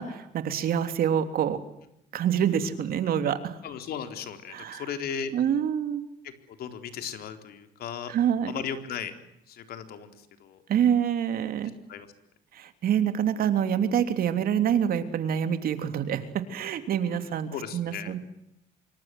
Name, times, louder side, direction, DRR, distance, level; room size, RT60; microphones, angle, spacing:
voice 1, 0.0-1.6 2.1-3.5 4.5-4.9 5.3-6.0 8.1-8.6 10.7-11.7 12.5-18.2, right 9 dB, 60° right, 9 dB, 3.2 m, -26 dB
voice 2, 3.6-5.3 6.2-6.3 6.6-8.1 8.5-9.1 9.5-10.1 10.4-10.6 11.9-12.1 17.5-18.1, left 7 dB, 65° left, 8 dB, 4.1 m, -36 dB
26.0 x 25.0 x 8.0 m, 0.79 s
cardioid pair, 110°, 17 cm